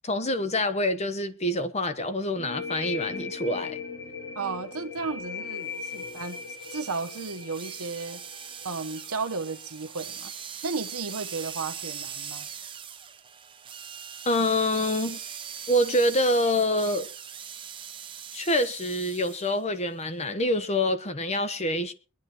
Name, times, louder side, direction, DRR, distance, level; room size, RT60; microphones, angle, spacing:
voice 1, 0.0-3.8 14.3-15.2 15.7-17.1 18.3-21.9, left 1 dB, 30° left, 1.0 m, -26 dB
sound 1, 2.4-9.8, left 5 dB, 85° left, 6.5 m, -38 dB
voice 2, 4.4-6.4 6.7-8.2 8.6-10.3 10.6-12.5, right 4 dB, 85° right, 1.1 m, -34 dB
sound 2, 5.7-19.6, right 8 dB, 25° right, 0.8 m, -41 dB
22.5 x 10.5 x 3.0 m
head